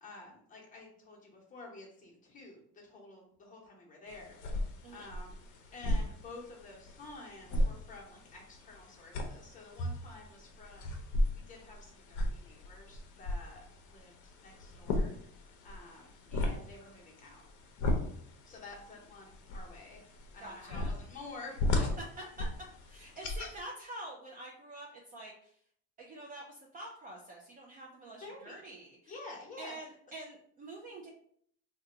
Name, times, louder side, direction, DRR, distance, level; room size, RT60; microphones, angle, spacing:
voice 1, 0.0-4.4 4.9-5.4 5.7-10.9 11.3-14.1 14.4-15.1 15.6-17.4 18.4-20.0 20.3-21.9 28.2-28.6 29.1-29.7, left 3 dB, 20° left, -3 dB, 0.8 m, -50 dB
sound 1, 4.1-23.6, left 1 dB, 55° left, 0.6 m, -36 dB
voice 2, 20.4-20.9 22.0-22.5 22.8-25.5 26.0-29.1 29.6-31.1, right 1 dB, 25° right, -2 dB, 0.3 m, -47 dB
2.7 x 2.2 x 3.7 m, 0.64 s
cardioid pair, 155°, 36 cm